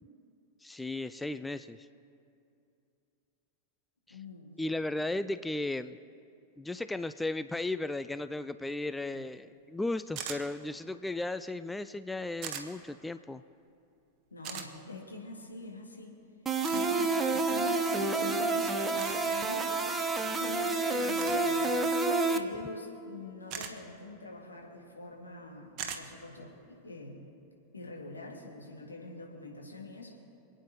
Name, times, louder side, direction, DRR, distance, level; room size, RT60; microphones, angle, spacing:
voice 1, 0.6-1.8 4.6-6.0 6.6-13.4, left 2 dB, 5° left, 12 dB, 0.3 m, -35 dB
voice 2, 4.1-4.6 9.1-9.2 14.3-16.2 16.7-19.7 20.4-21.7 22.3-27.3 27.7-30.1, left 2 dB, 80° left, -1 dB, 2.2 m, -44 dB
sound 1, 10.2-10.4 12.4-12.7 14.4-14.7 16.6-16.9 19.0-19.2 21.2-21.4 23.5-23.7 25.8-26.0, right 8 dB, 40° right, 1.3 m, -39 dB
sound 2, 16.5-22.4, right 3 dB, 15° right, 1.0 m, -29 dB
27.5 x 9.2 x 3.1 m, 2.5 s
figure-of-eight pair, 90°, 0 cm